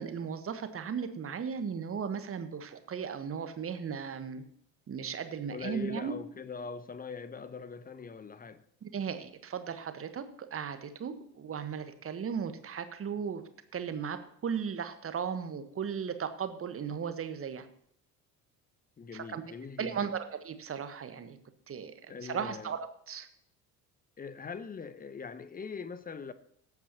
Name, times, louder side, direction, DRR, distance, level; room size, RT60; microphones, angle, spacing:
voice 1, 0.0-4.4 4.9-6.1 8.8-13.4 13.7-17.7 19.1-19.4 19.8-21.4 21.7-23.3, right 7 dB, 30° right, 1.2 m, -36 dB
voice 2, 5.5-8.6 19.0-20.1 22.1-22.7 24.2-26.3, left 5 dB, 20° left, 0.8 m, -42 dB
18.0 x 8.4 x 2.9 m
figure-of-eight pair, 55°, 47 cm